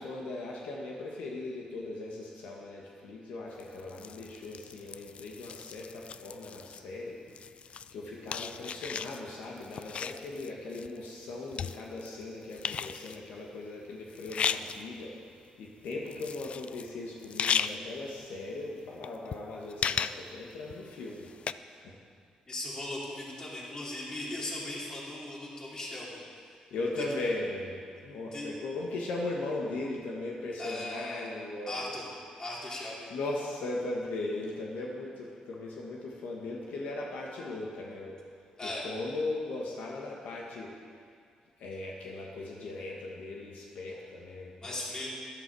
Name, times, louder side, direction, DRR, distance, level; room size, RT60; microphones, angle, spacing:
voice 1, 0.0-7.2 7.9-15.1 15.6-21.3 21.7-22.0 26.5-32.0 33.1-38.2 38.6-40.7 41.6-44.8, left 2 dB, 85° left, -2 dB, 1.6 m, -38 dB
sound 1, 3.6-6.8 7.3-12.2 12.5-13.3 14.1-15.0 15.4-15.5 15.9-16.9 17.2-17.7 18.1-18.2 18.9-21.5, left 7 dB, 55° left, 0.3 m, -36 dB
voice 2, 22.5-26.2 28.3-28.5 30.6-31.3 31.7-32.1 32.4-33.1 38.6-38.8 44.6-45.1, left 1 dB, 30° left, -4 dB, 3.1 m, -38 dB
13.0 x 10.5 x 4.8 m, 2.2 s
cardioid pair, 95°, 2 cm